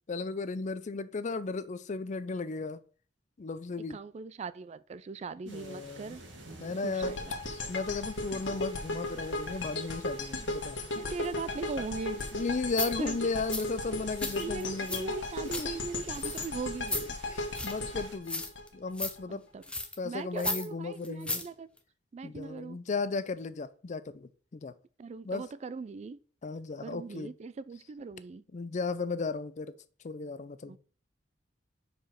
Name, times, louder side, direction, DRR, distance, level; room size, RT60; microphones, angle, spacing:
voice 1, 0.1-2.8 3.4-4.0 5.5-6.2 6.6-7.2 7.7-10.8 12.3-15.1 15.6-15.7 17.3-18.4 18.7-19.4 20.0-21.4 22.2-24.7 25.2-25.4 26.4-27.3 28.5-29.7 30.0-30.8, left 4 dB, 40° left, 0.4 m, -35 dB
voice 2, 3.9-6.2 6.8-7.3 10.4-10.5 11.0-12.2 13.0-13.2 13.9-14.0 14.4-17.2 19.3-19.6 20.0-21.7 22.1-22.8 25.0-26.2 26.8-28.4 30.6-30.8, right 4 dB, 35° right, 0.3 m, -39 dB
sound 1, 5.5-18.2, right 3 dB, 80° right, 1.9 m, -52 dB
sound 2, 7.0-19.2, left 2 dB, 80° left, 1.4 m, -36 dB
sound 3, 12.2-12.3 12.7-12.9 13.5-13.7 14.1-15.0 15.3-15.6 16.1-16.5 16.9-17.1 17.5-17.8 18.2-18.7 18.9-19.1 19.6-20.0 20.4-20.7 21.0-21.5 21.8-21.9, left 2 dB, 5° left, 0.8 m, -35 dB
5.1 x 4.8 x 5.7 m
head